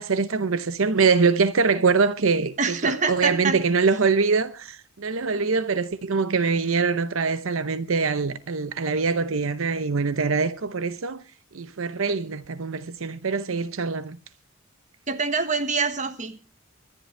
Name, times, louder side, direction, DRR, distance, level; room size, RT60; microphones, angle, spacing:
voice 1, 0.0-11.2 11.5-14.2, right 4 dB, 80° right, 0.8 m, -24 dB
voice 2, 2.6-3.6 15.1-16.4, right 4 dB, 35° right, 1.4 m, -25 dB
24.0 x 11.0 x 3.3 m
head